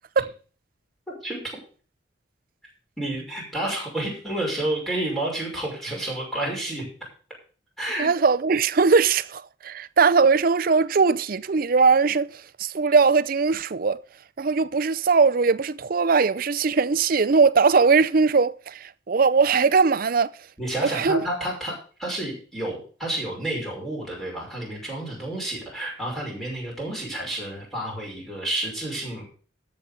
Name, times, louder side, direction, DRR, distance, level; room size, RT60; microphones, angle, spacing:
voice 1, 1.2-1.6 3.0-6.9 7.8-8.1 20.6-21.7 22.0-29.3, right 1 dB, ahead, 5.7 m, -30 dB
voice 2, 8.0-14.0 14.4-20.3 20.8-21.3, right 4 dB, 45° right, 0.5 m, -20 dB
13.0 x 7.6 x 5.3 m
head